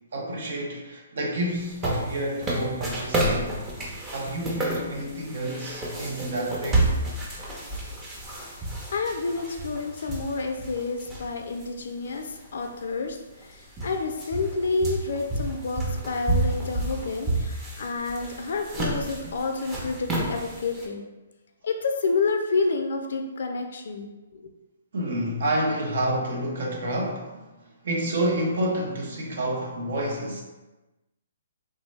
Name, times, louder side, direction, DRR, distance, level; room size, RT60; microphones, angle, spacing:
voice 1, 0.1-3.5 4.1-6.9 24.9-27.4 27.8-30.4, right 1 dB, 65° right, -1 dB, 0.6 m, -29 dB
sound 1, 1.6-11.7 12.1-12.2 13.1-13.2 13.4-20.9, right 1 dB, 15° right, 0.6 m, -30 dB
voice 2, 8.9-21.0 21.6-24.5, left 4 dB, 65° left, 4 dB, 0.3 m, -29 dB
3.2 x 2.0 x 3.1 m, 1.1 s
hypercardioid pair, 140°, 0 cm